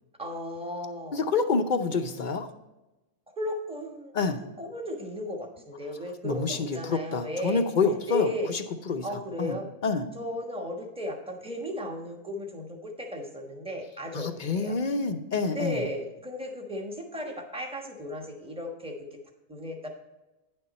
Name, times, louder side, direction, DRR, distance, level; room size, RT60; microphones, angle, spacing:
voice 1, 0.2-1.3 3.4-4.2 4.6-7.6 8.1-8.5 9.0-9.7 10.1-14.8 15.5-18.9 19.5-19.9, left 1 dB, 5° right, 2 dB, 1.1 m, -35 dB
voice 2, 1.1-2.5 4.1-4.4 6.2-10.1 14.1-15.8, left 4 dB, 50° left, 8 dB, 0.7 m, -28 dB
9.5 x 6.6 x 4.2 m, 1.0 s
omnidirectional pair, 1.2 m